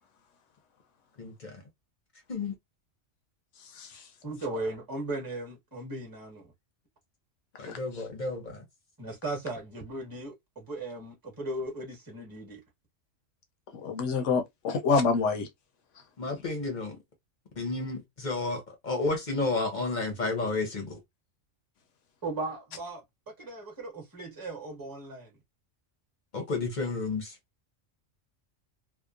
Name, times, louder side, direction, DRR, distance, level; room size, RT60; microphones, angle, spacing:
voice 1, 1.2-1.6 2.3-2.5 7.6-8.6 16.2-17.0 17.6-21.0 26.3-27.3, left 3 dB, 45° left, 0.8 m, -31 dB
voice 2, 4.2-6.5 9.0-12.6 22.2-23.0 23.4-25.3, right 2 dB, 15° right, 1.1 m, -37 dB
voice 3, 13.7-15.5, left 4 dB, 70° left, 0.9 m, -27 dB
2.9 x 2.0 x 2.4 m
omnidirectional pair, 1.3 m